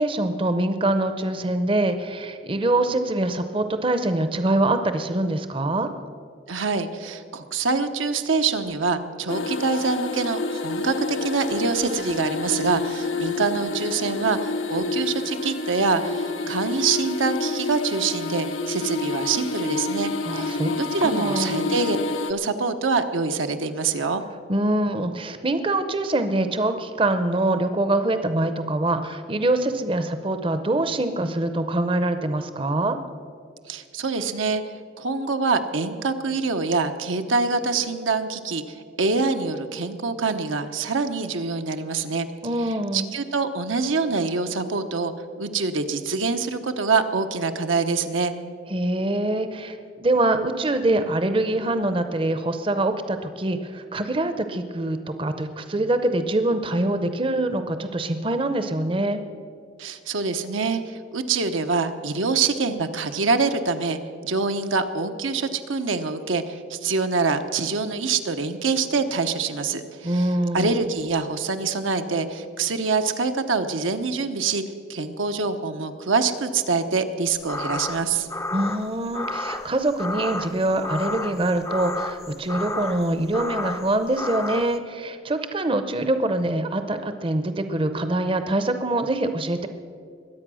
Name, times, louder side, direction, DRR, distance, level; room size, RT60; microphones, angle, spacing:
voice 1, 0.0-5.9 20.2-21.7 24.5-33.0 42.4-43.1 48.7-59.2 70.0-70.9 78.5-89.7, right 1 dB, 25° right, 9 dB, 0.6 m, -24 dB
voice 2, 6.5-22.0 22.3-24.2 33.7-34.6 35.0-42.3 42.9-48.3 59.8-74.6 74.9-78.3, right 4 dB, 85° right, 7 dB, 0.9 m, -25 dB
sound 1, 9.3-22.3, left 3 dB, 85° left, 0.8 m, -29 dB
sound 2, 77.4-84.8, left 2 dB, 15° left, 0.4 m, -32 dB
22.0 x 8.5 x 6.2 m, 2.3 s
head